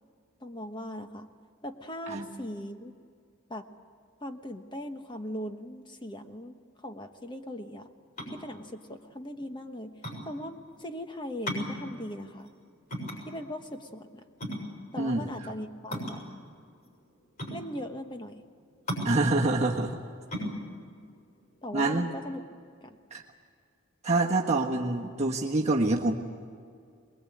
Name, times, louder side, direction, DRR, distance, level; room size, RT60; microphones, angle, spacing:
voice 1, 0.4-1.3 1.6-2.9 3.5-3.6 4.2-6.6 6.8-7.9 8.3-10.0 10.2-12.5 13.3-14.2 14.9-16.2 17.5-18.4 21.6-22.4 22.8-23.0, left 1 dB, 20° left, 6 dB, 1.3 m, -39 dB
sound 1, 8.0-22.4, equal, 40° left, 7.0 m, -38 dB
voice 2, 15.0-15.3 19.0-20.0 21.7-22.1 23.1-23.2 24.0-26.1, right 2 dB, 30° right, -2 dB, 1.5 m, -26 dB
23.5 x 21.5 x 8.6 m, 2.2 s
head